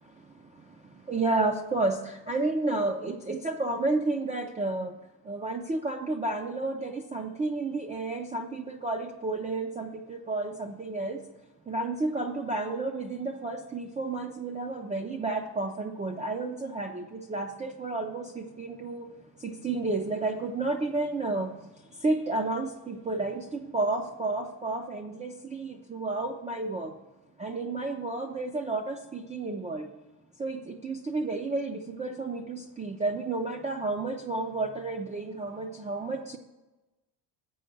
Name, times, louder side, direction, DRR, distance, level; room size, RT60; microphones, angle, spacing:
voice 1, 1.1-2.0 2.3-4.9 5.3-11.2 11.7-19.1 19.4-21.5 22.0-26.9 27.4-29.9 30.4-36.4, right 2 dB, 15° right, 2 dB, 0.4 m, -31 dB
7.8 x 5.2 x 6.5 m, 1.0 s
cardioid pair, 160°, 44 cm